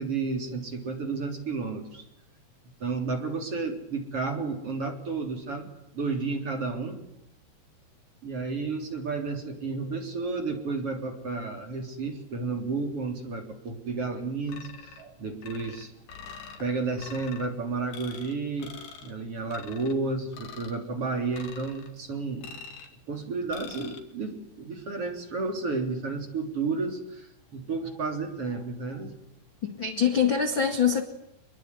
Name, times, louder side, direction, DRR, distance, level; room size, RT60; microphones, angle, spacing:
voice 1, 0.0-2.0 2.8-7.0 8.2-15.9 16.6-22.5 23.1-29.2, right 4 dB, 35° right, 4.1 m, -32 dB
sound 1, 14.5-15.1 15.4-16.6 17.0-17.5 17.9-18.3 18.6-19.1 19.5-20.0 20.3-20.8 21.3-21.9 22.4-23.0 23.5-24.0, left 6 dB, 65° left, 4.8 m, -44 dB
voice 2, 29.6-31.0, left 7 dB, 40° left, 2.0 m, -24 dB
27.0 x 22.0 x 9.8 m
omnidirectional pair, 4.9 m